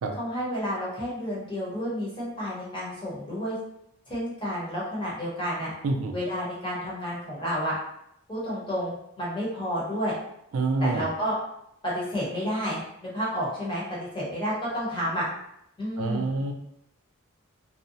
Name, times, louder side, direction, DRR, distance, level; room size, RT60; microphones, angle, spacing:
voice 1, 0.2-3.6 4.1-5.7 6.1-7.8 8.3-10.1 10.8-11.4 11.8-15.3 15.8-16.3, equal, 25° left, -7 dB, 0.9 m, -30 dB
voice 2, 5.8-6.1 10.5-11.1 16.0-16.5, right 3 dB, 85° right, 3 dB, 0.4 m, -27 dB
2.6 x 2.0 x 2.6 m, 0.78 s
head